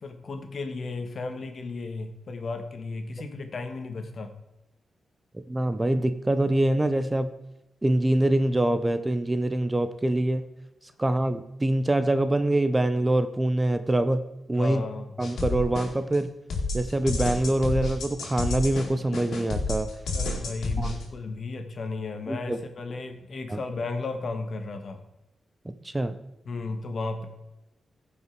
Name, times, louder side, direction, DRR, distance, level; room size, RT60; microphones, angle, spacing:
voice 1, 0.0-4.3 14.6-15.1 20.1-25.0 26.4-27.3, left 3 dB, 55° left, 6 dB, 1.4 m, -34 dB
voice 2, 5.5-7.3 7.8-10.4 11.0-14.2 14.5-14.8 15.2-16.3 16.7-19.9 20.8-20.9 22.3-22.6 23.5-23.6 25.6-26.2, right 1 dB, 15° right, 10 dB, 0.7 m, -24 dB
sound 1, 15.2-16.2 16.5-21.0, left 2 dB, 80° left, 2.4 m, -30 dB
15.0 x 5.6 x 4.6 m, 0.91 s
cardioid pair, 90°, 0 cm